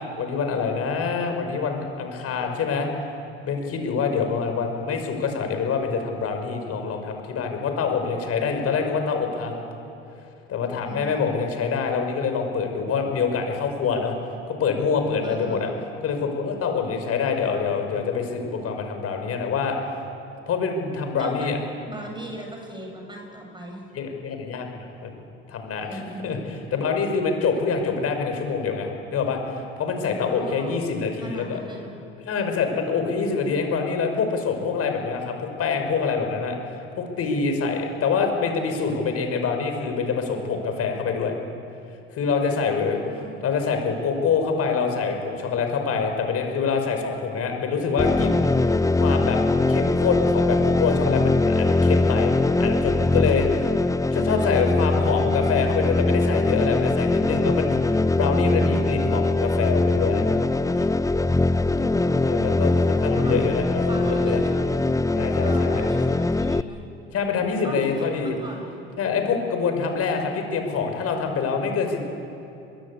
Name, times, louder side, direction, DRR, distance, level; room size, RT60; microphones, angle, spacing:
voice 1, 0.2-2.9 3.4-9.6 10.5-14.1 14.5-15.7 16.0-19.8 20.5-21.6 23.9-31.6 32.3-36.6 37.0-41.4 42.1-43.0 43.4-49.4 49.7-53.7 54.1-60.5 61.8-61.9 62.2-64.4 65.1-65.9 67.1-68.3 69.0-72.0, left 5 dB, 55° left, 5 dB, 5.7 m, -26 dB
voice 2, 10.8-11.2 15.2-15.6 21.2-21.5 21.9-23.9 25.8-26.4 30.0-30.7 31.2-32.0 42.7-43.4 61.3-62.6 63.1-63.4 63.9-64.8 65.4-66.8 67.6-68.8, right 1 dB, 15° right, 1 dB, 7.7 m, -38 dB
sound 1, 48.0-66.6, left 2 dB, 10° left, 0.8 m, -21 dB
24.0 x 21.5 x 8.6 m, 2.9 s
hypercardioid pair, 65°, 30 cm